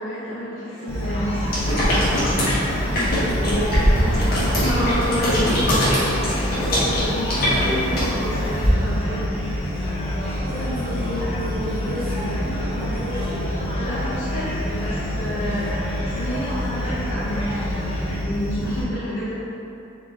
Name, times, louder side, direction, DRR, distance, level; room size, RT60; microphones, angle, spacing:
voice 1, 0.0-2.4 4.4-9.3 13.7-19.3, equal, 90° left, -12 dB, 0.9 m, -29 dB
sound 1, 0.7-18.2, equal, 30° left, 0.7 m, -34 dB
sound 2, 0.9-18.8, left 1 dB, 25° right, 1.1 m, -27 dB
sound 3, 1.5-8.7, equal, 45° left, 1.3 m, -22 dB
voice 2, 2.9-4.4 10.4-13.4, equal, 45° right, -10 dB, 1.5 m, -30 dB
4.3 x 3.2 x 3.6 m, 2.8 s
head